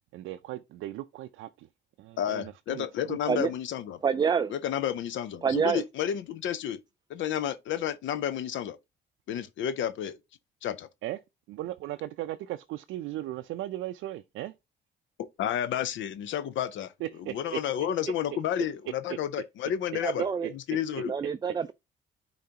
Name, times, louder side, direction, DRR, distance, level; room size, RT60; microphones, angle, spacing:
voice 1, 0.1-1.7 2.0-3.2 11.0-11.2 11.5-14.5 17.0-17.6 19.1-19.2 20.4-20.5 21.0-21.1, right 15 dB, 85° right, 0.4 m, -37 dB
voice 2, 2.2-4.0 4.5-6.8 7.1-8.8 9.3-10.2 10.6-10.9 15.2-16.9 17.3-20.3 20.5-21.1, left 10 dB, 75° left, 0.5 m, -31 dB
voice 3, 4.0-4.5 5.4-5.8 20.0-20.5 21.0-21.7, right 6 dB, 20° right, 0.3 m, -27 dB
10.5 x 3.9 x 2.8 m
cardioid pair, 90°, 20 cm